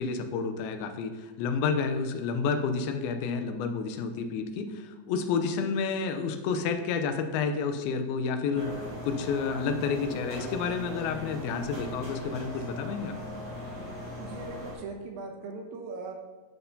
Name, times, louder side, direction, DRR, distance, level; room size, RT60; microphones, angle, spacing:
voice 1, 0.0-8.7 9.0-13.2, left 5 dB, 80° left, 7 dB, 2.5 m, -30 dB
sound 1, 8.5-14.7, left 1 dB, 25° right, 2.2 m, -39 dB
voice 2, 14.2-16.1, right 3 dB, 80° right, 3 dB, 2.3 m, -39 dB
11.0 x 5.7 x 2.7 m, 1.2 s
omnidirectional pair, 4.5 m